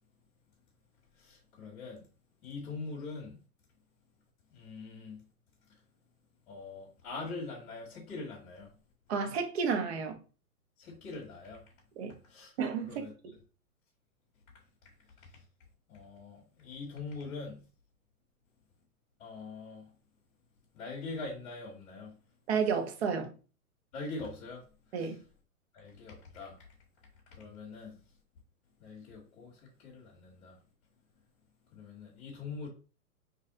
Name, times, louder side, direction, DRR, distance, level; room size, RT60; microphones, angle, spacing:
voice 1, 1.2-2.0 2.4-3.4 4.5-5.2 6.5-8.7 10.8-11.6 12.3-12.5 12.8-13.1 15.9-17.6 19.2-19.9 20.7-22.1 23.9-24.6 25.0-25.1 25.7-26.6 27.3-28.0 28.8-30.6 31.7-32.7, left 3 dB, 35° left, 1.8 m, -43 dB
voice 2, 9.1-10.2 12.0-12.1 12.6-13.1 22.5-23.3 24.9-25.2, right 6 dB, 45° right, 0.9 m, -31 dB
3.3 x 3.1 x 3.8 m
hypercardioid pair, 150°, 44 cm